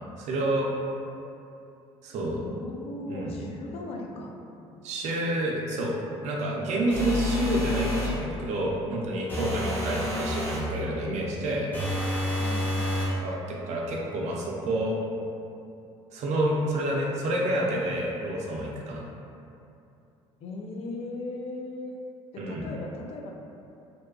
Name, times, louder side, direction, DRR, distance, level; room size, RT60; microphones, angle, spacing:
voice 1, 0.2-0.7 2.0-2.4 3.1-3.3 4.8-6.0 6.2-11.7 13.2-15.0 16.1-19.0 22.4-22.7, right 1 dB, 65° right, -2 dB, 0.5 m, -28 dB
voice 2, 2.4-4.4 9.4-9.6 12.4-12.8 20.4-22.0 22.3-23.3, left 2 dB, 55° left, 0 dB, 0.4 m, -37 dB
sound 1, 6.9-8.2 9.3-10.7 11.7-13.2, left 1 dB, 15° left, 0.8 m, -29 dB
2.6 x 2.2 x 2.3 m, 2.7 s
supercardioid pair, 75°, 13 cm